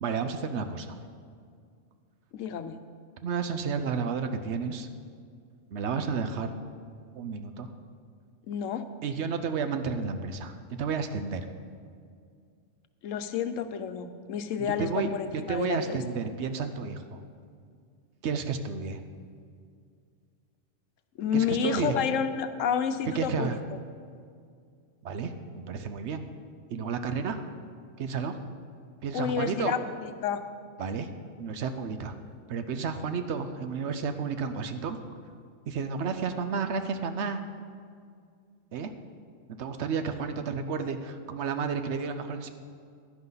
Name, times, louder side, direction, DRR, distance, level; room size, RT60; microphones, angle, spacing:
voice 1, 0.0-1.0 3.2-4.9 5.7-6.5 7.2-7.7 9.0-11.5 14.6-17.2 18.2-19.0 21.3-22.0 23.1-23.6 25.0-26.2 26.7-27.4 28.0-28.4 29.0-29.7 30.8-31.1 31.4-32.1 32.5-35.0 35.7-37.4 38.7-38.9 39.6-42.5, right 5 dB, 65° right, 9 dB, 0.9 m, -31 dB
voice 2, 2.3-2.8 8.5-8.8 13.0-16.0 21.2-23.8 29.1-30.4, left 7 dB, 85° left, 10 dB, 1.0 m, -30 dB
11.0 x 10.5 x 4.0 m, 2.2 s
omnidirectional pair, 1.3 m